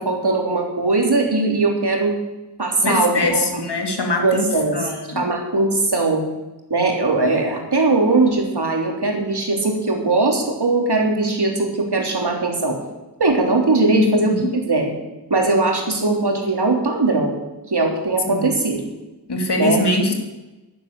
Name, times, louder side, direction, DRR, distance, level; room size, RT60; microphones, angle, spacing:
voice 1, 0.0-2.1 2.6-3.5 4.2-4.9 5.2-6.2 6.7-12.8 13.2-14.9 15.3-17.4 17.7-18.8 19.6-19.8, right 3 dB, 70° right, 1 dB, 3.5 m, -20 dB
voice 2, 2.8-4.5 4.7-5.3 13.9-14.5 18.3-18.6 19.3-20.1, left 2 dB, 75° left, 3 dB, 2.6 m, -22 dB
11.5 x 10.5 x 8.4 m, 1.1 s
wide cardioid pair, 50°, 41 cm